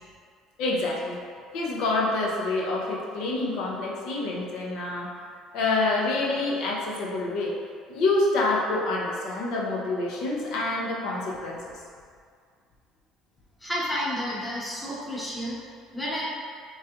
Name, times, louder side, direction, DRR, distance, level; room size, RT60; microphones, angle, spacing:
voice 1, 0.6-1.2 1.5-5.1 5.5-7.5 7.9-11.7, left 2 dB, 70° left, -3 dB, 0.8 m, -27 dB
voice 2, 13.6-15.6 15.9-16.3, equal, 10° left, -7 dB, 1.3 m, -30 dB
5.5 x 3.2 x 2.4 m, 2.1 s
supercardioid pair, 85°, 0 cm